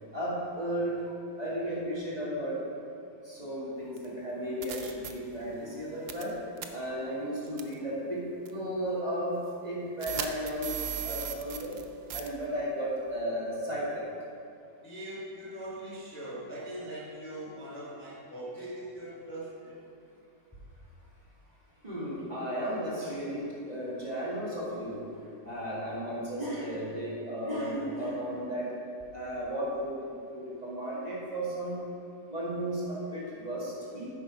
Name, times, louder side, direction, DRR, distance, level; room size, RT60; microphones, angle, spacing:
voice 1, 0.1-1.0 1.4-2.6 3.2-6.3 6.7-11.7 12.1-14.0 21.8-28.7 29.1-30.0 30.3-31.8 32.3-34.1, equal, 25° right, -7 dB, 1.7 m, -34 dB
sound 1, 4.0-4.1 4.6-5.1 6.1-6.3 6.6-6.7 7.6-7.7 8.5-8.6 10.0-11.8 12.1-12.3, right 9 dB, 75° right, 0.5 m, -36 dB
voice 2, 14.8-19.7, right 1 dB, 10° left, -8 dB, 1.3 m, -41 dB
8.3 x 5.9 x 4.9 m, 2.4 s
omnidirectional pair, 1.7 m